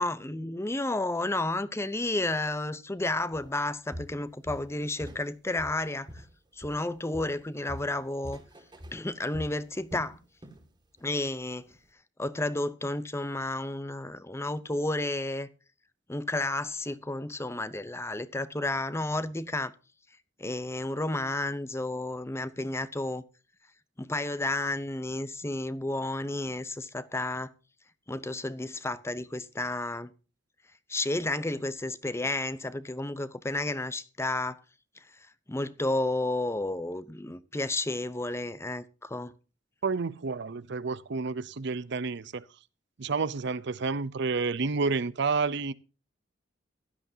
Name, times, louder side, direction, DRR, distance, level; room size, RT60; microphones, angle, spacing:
voice 1, 0.0-6.1 6.6-8.4 8.9-10.2 11.0-11.7 12.2-15.5 16.1-19.7 20.4-23.2 24.0-27.5 28.1-30.1 30.9-34.6 35.5-39.3, left 2 dB, 15° left, 0.7 m, -31 dB
Walk footsteps, 3.3-3.5 3.9-5.3 5.6-6.9 7.1-10.7 11.0-11.2 11.7-11.8, equal, 25° right, 2.2 m, -44 dB
voice 2, 39.8-42.4 43.0-45.7, right 4 dB, 65° right, 0.7 m, -30 dB
16.0 x 11.5 x 2.8 m
head